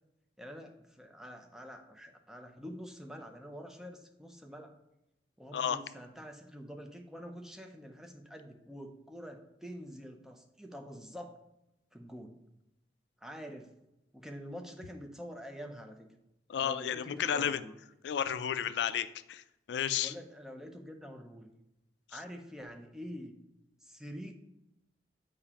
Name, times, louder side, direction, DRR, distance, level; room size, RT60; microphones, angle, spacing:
voice 1, 0.4-4.7 5.4-11.4 11.9-12.4 13.2-13.7 14.1-16.1 16.6-17.7 20.0-21.5 22.1-23.3 23.8-24.3, equal, 5° right, 3 dB, 0.5 m, -46 dB
voice 2, 16.5-17.6 18.0-19.4 19.7-20.1, left 9 dB, 75° left, 13 dB, 0.3 m, -32 dB
6.8 x 4.7 x 2.9 m, 0.89 s
head